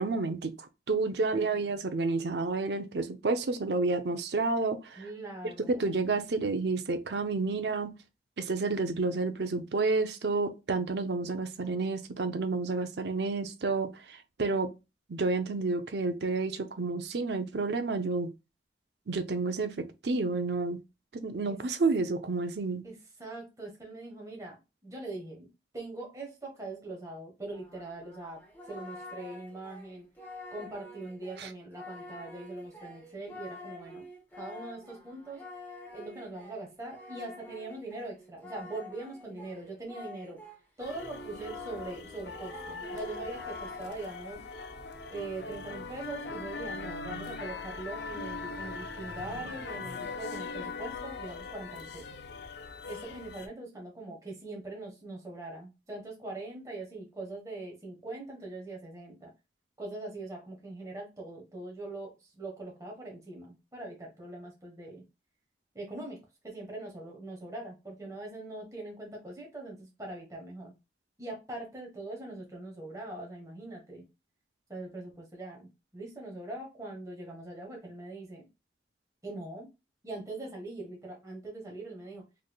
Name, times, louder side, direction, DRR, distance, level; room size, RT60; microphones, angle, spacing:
voice 1, 0.0-5.0 5.7-7.9 8.4-14.7 15.1-18.3 19.1-20.8 21.1-22.8 31.4-31.5, right 3 dB, 70° right, 0.6 m, -30 dB
voice 2, 5.0-5.9 21.4-21.6 22.8-25.5 25.7-28.4 28.7-30.1 30.5-34.1 34.3-35.4 35.9-40.4 40.8-44.4 45.1-52.1 52.8-59.3 59.8-65.0 65.7-66.2 66.4-70.7 71.2-74.1 74.7-75.7 75.9-78.5 79.2-79.7 80.0-82.2, right 2 dB, 20° right, 1.2 m, -42 dB
Singing, 27.5-40.6 40.9-44.1, left 2 dB, 10° left, 0.9 m, -47 dB
sound 1, 40.8-53.5, left 4 dB, 75° left, 0.5 m, -41 dB
4.0 x 3.3 x 2.2 m
head